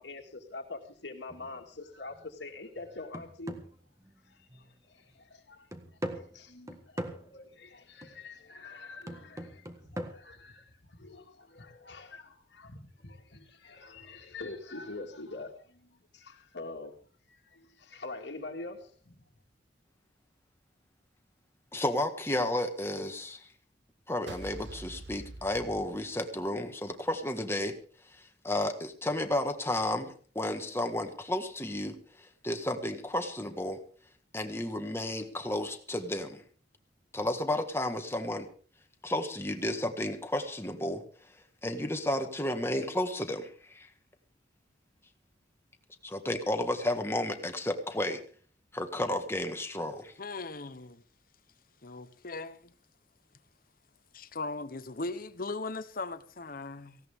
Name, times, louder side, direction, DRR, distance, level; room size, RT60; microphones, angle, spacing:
voice 1, 0.0-3.6 4.2-5.7 6.1-17.0 17.3-19.2, left 3 dB, 75° left, 2.1 m, -45 dB
sound 1, 1.3-1.6 2.1-2.3 2.8-4.7 5.1-5.2 5.7-7.4 8.0-8.3 9.1-10.1, right 1 dB, 15° right, 1.6 m, -41 dB
voice 2, 21.7-23.4 24.1-27.7 28.4-32.0 32.4-33.8 34.3-36.4 37.1-38.5 39.0-41.0 41.6-43.9 46.0-48.2 48.7-50.1, left 1 dB, 15° left, 1.6 m, -32 dB
sound 2, 24.3-26.6, right 2 dB, 80° right, 1.2 m, -45 dB
voice 3, 50.2-51.0 51.8-52.7 54.1-57.0, left 3 dB, 50° left, 1.0 m, -38 dB
18.0 x 16.5 x 3.6 m
head